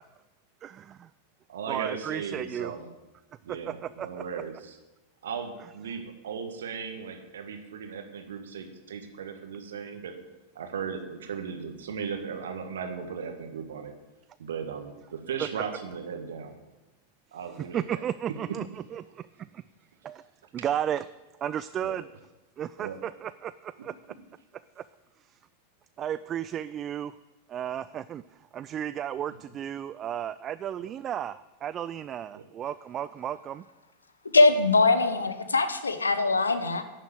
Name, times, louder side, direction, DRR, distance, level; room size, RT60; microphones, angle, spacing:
voice 1, 0.6-1.1 1.7-2.7 3.5-4.2 17.5-18.6 18.9-19.3 19.5-19.6 20.0-20.2 20.5-21.1 21.4-22.1 22.6-23.9 24.8-24.9 25.3-25.4 26.0-27.1 27.5-28.2 28.5-33.6, right 10 dB, 30° right, 15 dB, 0.3 m, -34 dB
voice 2, 1.5-2.9 3.4-4.8 5.2-10.1 10.6-13.9 14.4-16.5 17.3-18.0 18.5-18.6 21.8-22.0 22.8-23.0 32.4-32.5, right 6 dB, 65° right, 5 dB, 1.7 m, -37 dB
voice 3, 34.3-36.8, left 3 dB, 75° left, 10 dB, 1.1 m, -22 dB
11.0 x 7.3 x 8.2 m, 1.1 s
figure-of-eight pair, 90°, 0 cm